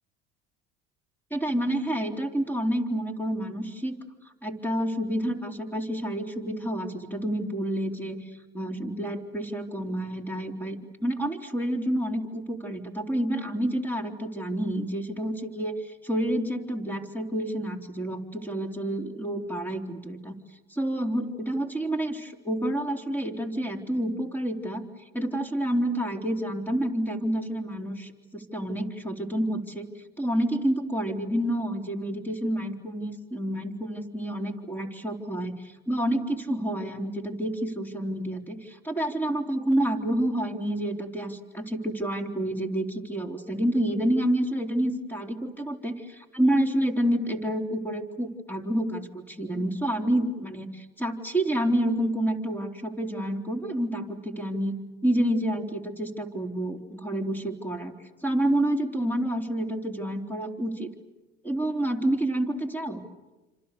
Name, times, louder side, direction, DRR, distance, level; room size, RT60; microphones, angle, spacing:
voice 1, 1.3-4.0 4.4-8.2 8.5-20.4 20.7-24.8 25.1-29.9 30.2-54.8 55.0-57.9 58.2-60.9 61.4-63.0, right 1 dB, 5° left, 4 dB, 3.9 m, -29 dB
28.5 x 26.5 x 6.9 m, 1.1 s
supercardioid pair, 85°, 30 cm